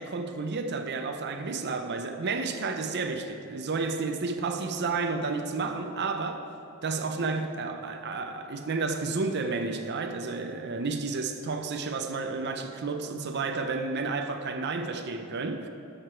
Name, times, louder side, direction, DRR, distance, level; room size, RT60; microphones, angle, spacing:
voice 1, 0.0-6.4 6.8-15.7, right 4 dB, 50° right, 0.6 m, -31 dB
12.5 x 6.6 x 4.5 m
head